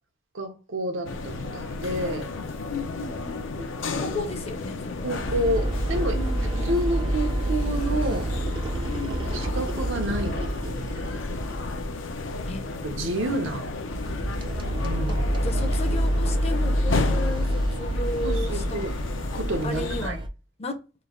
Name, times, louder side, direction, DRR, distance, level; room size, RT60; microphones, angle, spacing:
voice 1, 0.3-2.3 3.6-3.7 4.1-4.3 5.0-6.2 6.6-8.3 9.1-11.0 12.8-13.7 14.8-15.2 18.2-19.0 19.3-20.2, right 1 dB, 85° right, 0.9 m, -30 dB
sound 1, 1.0-20.1, left 3 dB, 80° left, 0.5 m, -33 dB
voice 2, 2.7-3.4 4.0-5.1 6.1-6.7 8.8-9.3 12.5-12.6 15.4-18.8 19.6-20.2 20.6-20.8, left 2 dB, 30° left, 0.6 m, -34 dB
sound 2, 5.2-12.0 12.3-12.6 12.9-13.1 13.5-20.3, right 1 dB, 25° right, 0.3 m, -27 dB
3.1 x 2.3 x 3.8 m
head